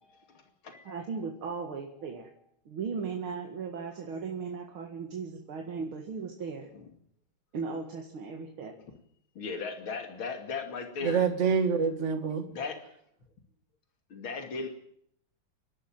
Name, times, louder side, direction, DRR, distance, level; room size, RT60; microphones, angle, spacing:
voice 1, 0.0-1.2 2.0-2.3 6.7-6.9 9.3-11.3 12.5-12.8 14.1-14.7, left 5 dB, 85° left, 5 dB, 3.4 m, -38 dB
voice 2, 0.9-2.3 2.7-6.7 7.5-8.7, right 5 dB, 90° right, 3 dB, 2.7 m, -37 dB
voice 3, 11.0-12.5, right 6 dB, 35° right, 8 dB, 2.1 m, -26 dB
28.5 x 12.0 x 9.0 m, 0.70 s
omnidirectional pair, 2.2 m